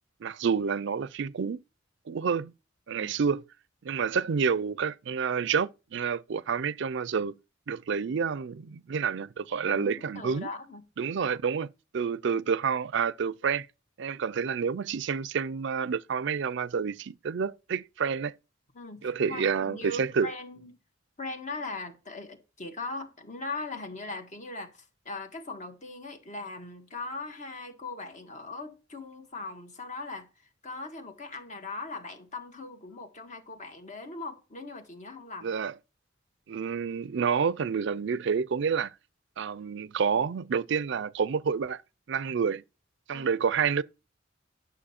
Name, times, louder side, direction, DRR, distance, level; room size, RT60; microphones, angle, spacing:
voice 1, 0.2-1.6 2.1-2.5 2.9-3.4 3.8-7.4 7.7-10.5 11.0-13.7 14.0-18.3 19.0-20.3 35.4-35.7 36.5-38.9 39.4-41.8 42.1-42.6 43.1-43.8, right 6 dB, 65° right, 0.4 m, -29 dB
voice 2, 9.7-10.8 18.7-20.7 21.2-30.3 30.6-35.5 43.1-43.3, left 3 dB, 40° left, 1.6 m, -40 dB
11.5 x 6.8 x 4.3 m
head